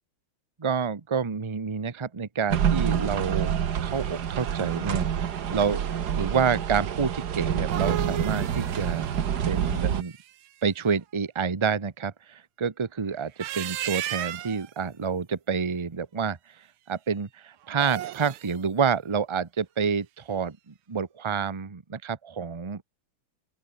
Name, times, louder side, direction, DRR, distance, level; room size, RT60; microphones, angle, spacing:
voice 1, 0.6-3.5 3.8-5.9 6.1-9.1 9.5-10.1 10.6-16.4 16.9-22.8, right 6 dB, 30° right, 0.5 m, -28 dB
sound 1, 2.5-10.0, right 8 dB, 55° right, 1.6 m, -27 dB
sound 2, 7.4-10.5 13.2-14.7 17.7-18.6, right 13 dB, 75° right, 1.7 m, -35 dB
open air
omnidirectional pair, 2.3 m